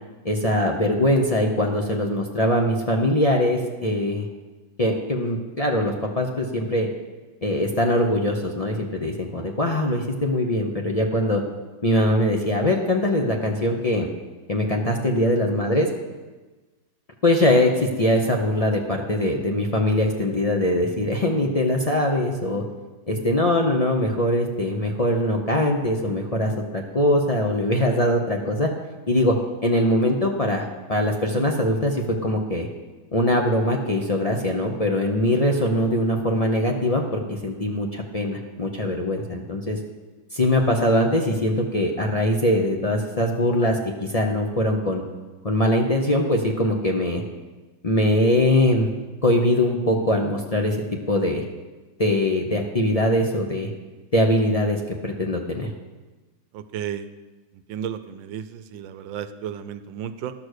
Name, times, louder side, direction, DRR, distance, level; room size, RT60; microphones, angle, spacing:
voice 1, 0.2-4.3 4.8-6.9 7.4-11.4 11.8-14.1 14.5-15.9 17.2-22.6 23.1-28.7 29.1-29.4 29.6-32.7 33.1-39.8 40.3-45.0 45.4-47.2 47.8-48.9 49.2-51.4 52.0-53.7 54.1-55.7, left 1 dB, 50° left, 1 dB, 0.4 m, -22 dB
voice 2, 56.5-57.1 57.5-60.3, right 9 dB, 85° right, 11 dB, 1.4 m, -33 dB
12.0 x 6.4 x 6.5 m, 1.2 s
omnidirectional pair, 2.0 m